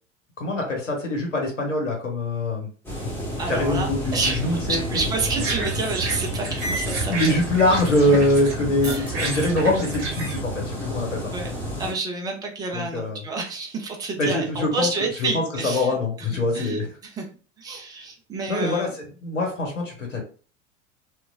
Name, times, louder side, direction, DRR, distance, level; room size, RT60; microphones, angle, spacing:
voice 1, 0.4-2.7 3.5-5.0 7.1-11.3 12.7-13.2 14.2-16.9 18.5-20.2, left 1 dB, 80° left, 0 dB, 0.9 m, -24 dB
sound 1, 2.8-11.9, equal, 5° left, 1.1 m, -30 dB
voice 2, 3.4-7.4 8.8-9.1 11.3-11.5 11.8-15.9 16.5-17.3 17.6-18.9, right 3 dB, 10° right, 1 dB, 0.4 m, -29 dB
sound 2, 5.2-8.5 8.8-10.4, right 2 dB, 35° right, 0.9 m, -31 dB
2.8 x 2.2 x 2.4 m, 0.38 s
figure-of-eight pair, 80°, 37 cm